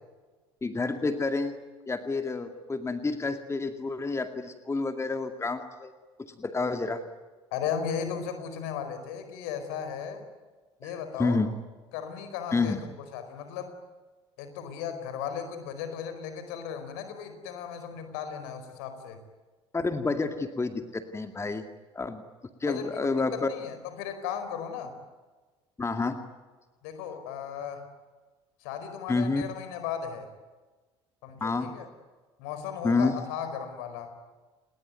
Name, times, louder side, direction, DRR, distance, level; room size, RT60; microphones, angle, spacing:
voice 1, 0.6-1.6 1.9-5.9 6.2-7.0 10.8-11.5 12.5-12.8 19.7-21.6 21.9-22.2 22.6-23.5 25.8-26.2 29.1-29.4 31.4-31.7 32.8-33.2, left 3 dB, 20° left, 7 dB, 2.2 m, -29 dB
voice 2, 7.5-10.2 10.8-11.4 11.9-12.8 13.1-13.7 14.4-19.2 22.7-24.9 26.8-27.9 28.6-30.3 31.2-31.9 32.4-34.1, left 7 dB, 65° left, 9 dB, 4.8 m, -36 dB
30.0 x 20.0 x 9.4 m, 1.3 s
figure-of-eight pair, 60°, 14 cm